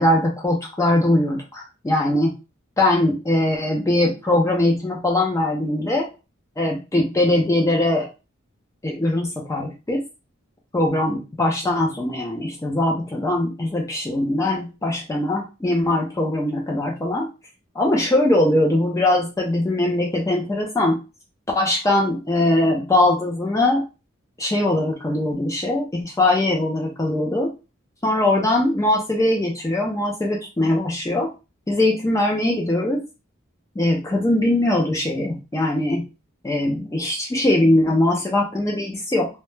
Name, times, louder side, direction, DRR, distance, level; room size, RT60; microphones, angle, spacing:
voice 1, 0.0-2.3 2.8-6.1 6.6-8.1 8.8-10.0 10.7-17.3 17.8-21.0 21.6-23.8 24.4-27.5 28.0-31.3 31.7-33.0 33.8-36.0 36.4-39.3, left 1 dB, 15° left, 0 dB, 0.3 m, -21 dB
2.1 x 2.1 x 3.0 m, 0.29 s
head